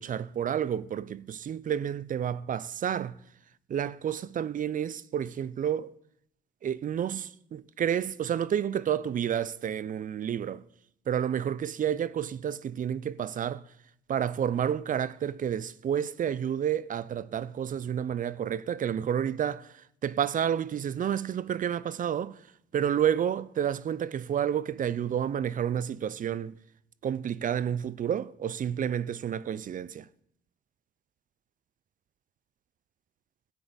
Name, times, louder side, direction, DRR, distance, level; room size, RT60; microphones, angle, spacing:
voice 1, 0.0-3.2 3.7-5.9 6.6-10.6 11.1-13.6 14.1-19.7 20.0-22.4 22.7-26.5 27.0-30.1, right 9 dB, 45° right, 0.4 m, -30 dB
12.0 x 9.3 x 4.0 m
cardioid pair, 90°, 20 cm